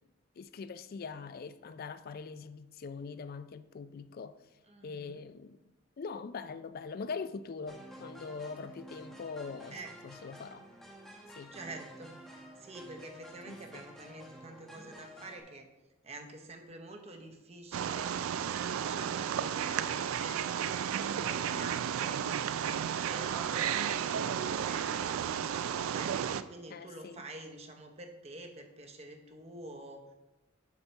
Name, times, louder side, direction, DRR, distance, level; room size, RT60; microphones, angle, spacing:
voice 1, 0.4-4.4 4.8-5.6 6.0-9.8 10.0-10.7 11.4-11.6 13.5-13.8 26.7-27.2, left 5 dB, 45° left, 0.3 m, -42 dB
voice 2, 4.7-5.2 9.7-9.9 11.5-15.7 16.0-18.2 18.7-22.5 23.0-25.5 25.8-30.2, right 2 dB, 30° right, 0.8 m, -48 dB
sound 1, 7.7-15.4, equal, ahead, 0.9 m, -51 dB
Wild animals, 17.7-26.4, right 8 dB, 75° right, 0.3 m, -33 dB
7.1 x 5.2 x 4.4 m
head